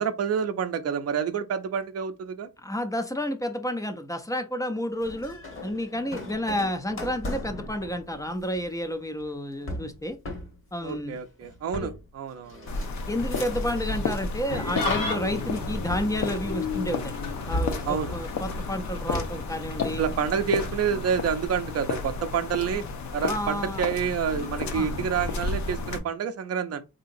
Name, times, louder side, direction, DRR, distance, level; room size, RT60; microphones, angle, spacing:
voice 1, 0.0-2.5 10.8-12.7 17.9-18.1 20.0-22.8 23.1-26.8, right 7 dB, 50° right, 0.5 m, -28 dB
voice 2, 2.6-10.2 10.7-11.2 11.8-11.9 13.1-17.1 17.5-20.0 23.2-23.8 24.7-25.0, left 1 dB, 10° left, 0.4 m, -30 dB
sound 1, 5.0-14.1 14.5-15.2 15.9-17.0 17.5-19.6, left 1 dB, 40° left, 1.1 m, -38 dB
sound 2, 12.7-26.0, left 3 dB, 60° left, 0.7 m, -33 dB
Engine starting / Idling, 14.5-25.1, left 4 dB, 85° left, 1.3 m, -36 dB
3.8 x 2.8 x 2.5 m
wide cardioid pair, 145°, 33 cm